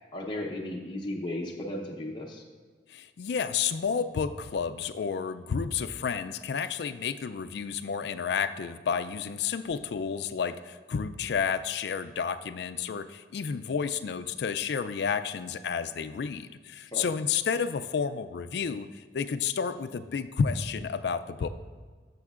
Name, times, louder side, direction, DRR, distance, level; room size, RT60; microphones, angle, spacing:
voice 1, 0.1-2.4 16.9-17.1, left 1 dB, 25° left, -1 dB, 0.8 m, -35 dB
voice 2, 2.9-21.5, left 6 dB, 70° left, 11 dB, 0.4 m, -31 dB
12.5 x 6.9 x 2.4 m, 1.5 s
head